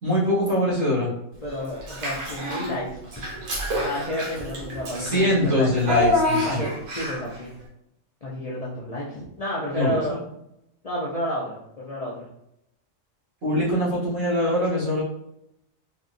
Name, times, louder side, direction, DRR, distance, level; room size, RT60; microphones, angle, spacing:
voice 1, 0.0-1.1 5.0-6.6 9.7-10.2 13.4-15.0, left 1 dB, 70° right, -7 dB, 2.0 m, -23 dB
voice 2, 1.4-3.2 3.8-5.7 6.4-7.6 8.2-10.2 10.8-12.3, equal, 45° left, -7 dB, 0.5 m, -31 dB
Child speech kid speaking / Bathtub (filling or washing), 1.8-2.7 3.1-7.3, equal, 85° right, 1.3 m, -27 dB
3.9 x 2.6 x 2.5 m, 0.80 s
omnidirectional pair, 1.4 m